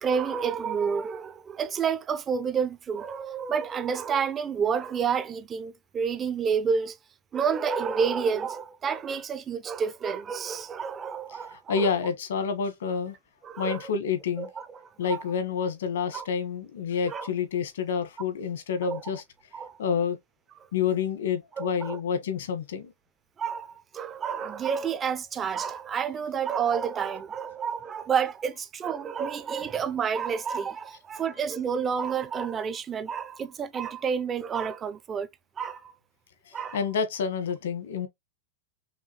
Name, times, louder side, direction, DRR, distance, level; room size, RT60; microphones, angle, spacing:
voice 1, 0.0-7.0 7.3-11.9 13.4-13.9 14.4-15.2 16.1-16.3 17.0-17.3 18.8-19.0 19.5-19.8 21.6-22.0 23.4-35.3 35.6-35.9 36.5-36.8, right 6 dB, 20° right, 0.4 m, -29 dB
voice 2, 11.5-13.2 13.6-14.5 15.0-19.2 19.8-20.2 20.7-22.9 36.5-38.1, left 6 dB, 85° left, 1.2 m, -28 dB
5.6 x 2.3 x 3.0 m
supercardioid pair, 150°, 0 cm